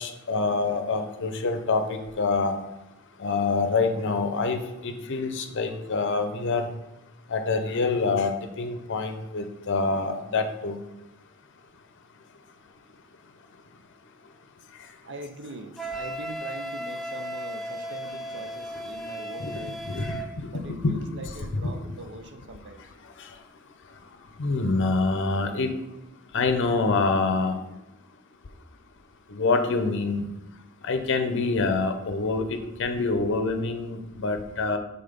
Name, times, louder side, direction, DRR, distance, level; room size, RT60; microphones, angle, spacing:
voice 1, 0.0-2.5 3.2-6.6 7.3-8.3 8.6-10.8 19.4-20.9 21.6-21.7 24.4-25.7 26.3-27.5 29.3-30.3 30.9-34.8, left 3 dB, 55° left, 7 dB, 0.6 m, -26 dB
voice 2, 15.0-19.8 20.5-22.9, right 2 dB, 55° right, 7 dB, 0.6 m, -42 dB
Wind instrument woodwind instrument, 15.8-20.3, equal, ahead, 0.5 m, -35 dB
5.7 x 4.0 x 5.1 m, 0.94 s
head